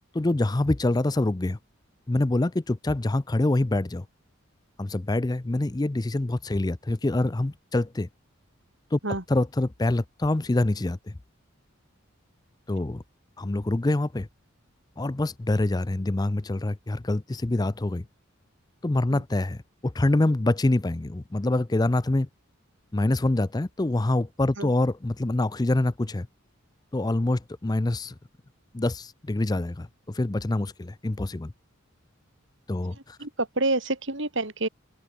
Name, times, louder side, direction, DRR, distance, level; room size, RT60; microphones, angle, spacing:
voice 1, 0.1-1.6 2.1-4.0 4.8-8.1 8.9-9.0 9.3-11.0 12.7-13.0 13.4-14.3 15.0-18.0 18.8-22.3 22.9-26.3 26.9-28.1 28.7-31.5 32.7-33.2, left 2 dB, 20° left, 0.5 m, -25 dB
voice 2, 32.9-34.7, right 2 dB, 60° right, 3.3 m, -28 dB
open air
head